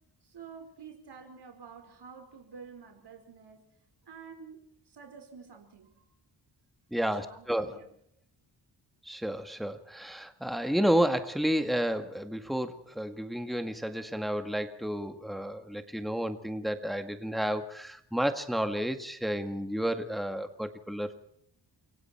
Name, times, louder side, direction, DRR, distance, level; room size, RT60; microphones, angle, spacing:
voice 1, 0.2-3.6 4.1-4.6 4.9-6.0 6.9-7.9, right 6 dB, 60° right, 5 dB, 5.1 m, -49 dB
voice 2, 6.9-7.8 9.1-21.1, equal, ahead, 8 dB, 1.9 m, -31 dB
29.0 x 23.5 x 4.5 m, 0.68 s
wide cardioid pair, 100°, 44 cm